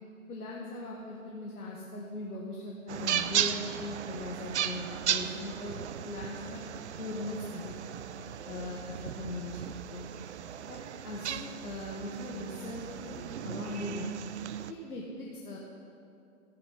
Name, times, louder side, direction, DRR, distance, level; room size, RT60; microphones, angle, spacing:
voice 1, 0.3-5.8 6.0-6.6 7.0-7.8 8.5-10.1 10.7-14.2 14.7-15.6, left 2 dB, 80° left, -3 dB, 2.2 m, -40 dB
sound 1, 2.9-14.7, right 9 dB, 50° right, 0.6 m, -36 dB
14.0 x 11.0 x 5.7 m, 2.5 s
hypercardioid pair, 140°, 44 cm